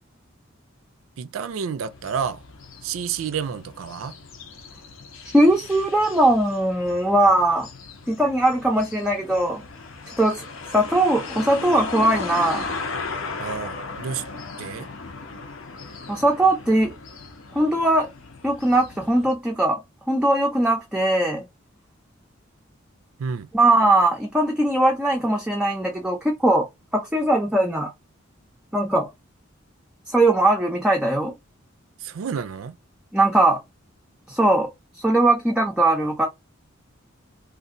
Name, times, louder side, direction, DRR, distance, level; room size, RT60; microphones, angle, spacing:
voice 1, 1.2-2.4 2.8-4.2 13.4-14.2 14.6-14.9 23.2-23.5 32.0-32.8, right 7 dB, 85° right, 0.4 m, -30 dB
sound 1, 1.9-19.4, left 4 dB, 75° left, 0.8 m, -37 dB
voice 2, 5.3-7.7 8.1-9.6 10.2-12.7 16.1-16.9 17.5-18.1 18.4-19.8 20.1-21.4 23.5-26.7 26.9-27.9 28.7-29.1 30.1-31.3 33.1-33.6 34.3-34.7 35.0-36.3, right 1 dB, 5° right, 0.5 m, -20 dB
2.6 x 2.4 x 3.7 m
head